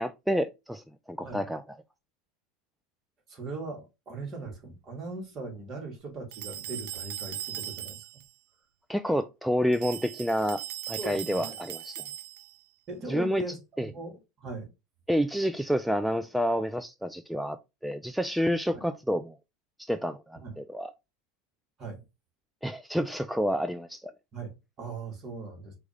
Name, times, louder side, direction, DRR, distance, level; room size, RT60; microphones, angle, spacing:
voice 1, 0.0-1.6 8.9-12.0 13.1-13.4 13.8-13.9 15.1-17.6 17.8-19.4 19.8-20.9 22.6-24.1, equal, ahead, 0.3 m, -29 dB
voice 2, 3.3-8.0 11.0-11.6 12.9-14.7 18.7-18.8 20.4-20.6 21.8-22.0 24.3-25.8, right 3 dB, 35° right, 1.9 m, -39 dB
sound 1, 6.3-8.3 9.7-12.6, right 12 dB, 75° right, 0.5 m, -39 dB
4.7 x 2.6 x 3.3 m
supercardioid pair, 105°, 0 cm